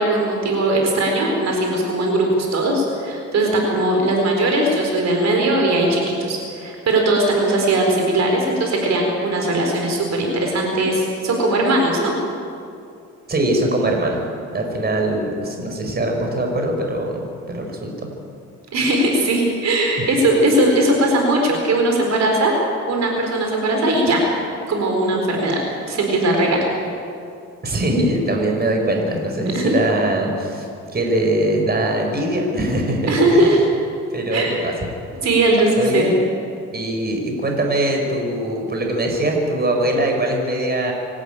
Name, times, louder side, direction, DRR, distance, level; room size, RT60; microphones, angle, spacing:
voice 1, 0.0-12.1 18.7-22.5 22.9-24.2 24.7-25.6 25.9-26.6 29.5-29.7 33.1-33.6 34.3-34.5 35.2-36.2, right 1 dB, 60° right, 1 dB, 4.2 m, -19 dB
voice 2, 13.3-14.2 14.5-17.2 17.5-18.1 27.6-33.6 34.1-34.7 35.8-36.2 36.7-40.9, right 1 dB, 30° right, 2 dB, 5.0 m, -22 dB
25.5 x 12.5 x 8.9 m, 2.5 s
cardioid pair, 90°, 30 cm